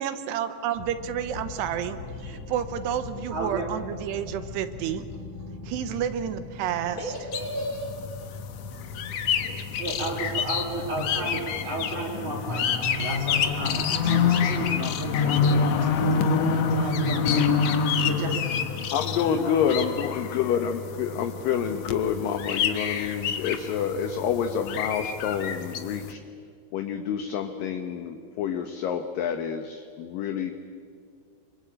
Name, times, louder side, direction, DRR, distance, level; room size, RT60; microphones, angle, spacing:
voice 1, 0.0-2.0 2.2-5.1 5.6-7.0, right 9 dB, 85° right, 10 dB, 3.0 m, -30 dB
sound 1, 0.7-16.2, left 2 dB, 45° left, 3.5 m, -42 dB
voice 2, 1.9-2.4 3.3-3.7 8.9-9.0 9.8-16.3 16.5-17.5 17.9-18.5, right 3 dB, 50° right, -2 dB, 3.9 m, -34 dB
voice 3, 7.0-7.9 18.5-19.6, equal, 20° left, 1 dB, 4.6 m, -35 dB
sound 2, 7.3-26.1, left 6 dB, 85° left, 1.4 m, -27 dB
voice 4, 18.9-26.2 26.7-30.5, left 7 dB, 70° left, 6 dB, 2.3 m, -28 dB
26.0 x 23.5 x 8.8 m, 2.3 s
omnidirectional pair, 4.9 m